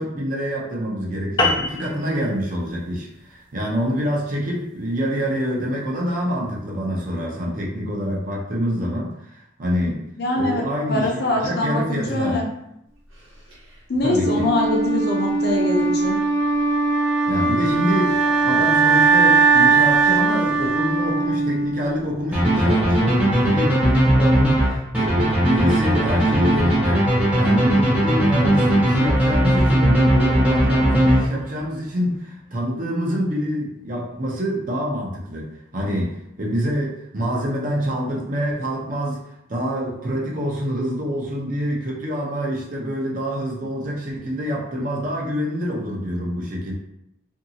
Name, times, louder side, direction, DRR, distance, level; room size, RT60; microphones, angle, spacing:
voice 1, 0.0-10.1 10.4-12.4 14.0-14.5 17.3-39.2 39.5-46.7, equal, 40° right, -3 dB, 0.6 m, -26 dB
sound 1, 1.4-6.1, left 2 dB, 20° left, 0.3 m, -28 dB
voice 2, 10.2-10.6 10.9-12.4 13.9-16.2, left 2 dB, 50° left, -1 dB, 0.6 m, -23 dB
Wind instrument woodwind instrument, 14.2-22.2, right 4 dB, 75° right, 1.0 m, -19 dB
sound 2, 22.3-31.6, right 1 dB, 5° right, 0.7 m, -18 dB
2.8 x 2.7 x 2.7 m, 0.80 s
head